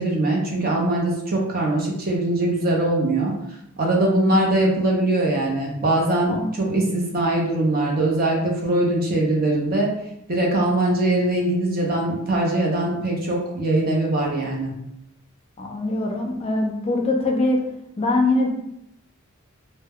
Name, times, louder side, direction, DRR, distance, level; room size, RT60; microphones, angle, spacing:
voice 1, 0.0-3.3 3.8-9.9 10.3-14.7, right 1 dB, 45° right, -2 dB, 0.6 m, -22 dB
voice 2, 15.6-17.6 18.0-18.5, left 2 dB, 30° left, 1 dB, 0.4 m, -22 dB
2.1 x 2.0 x 3.5 m, 0.79 s
head